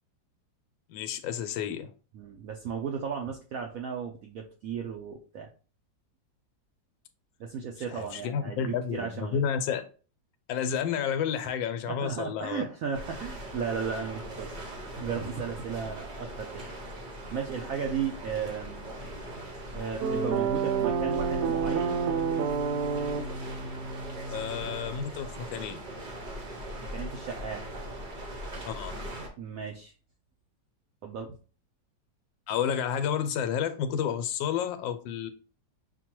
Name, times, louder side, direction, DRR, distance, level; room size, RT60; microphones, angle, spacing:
voice 1, 0.9-1.9 7.9-9.8 10.5-12.7 24.3-25.8 28.6-29.0 32.5-35.3, left 8 dB, 85° left, 1.3 m, -31 dB
voice 2, 2.1-5.5 7.4-9.4 11.9-14.5 15.0-16.6 17.3-18.9 19.7-22.1 26.9-27.7 29.4-29.9 31.0-31.4, right 6 dB, 90° right, 0.7 m, -35 dB
sound 1, 12.9-29.3, right 1 dB, 45° right, 0.6 m, -40 dB
sound 2, 20.0-25.0, right 6 dB, 70° right, 1.0 m, -29 dB
5.9 x 2.2 x 2.9 m
omnidirectional pair, 2.0 m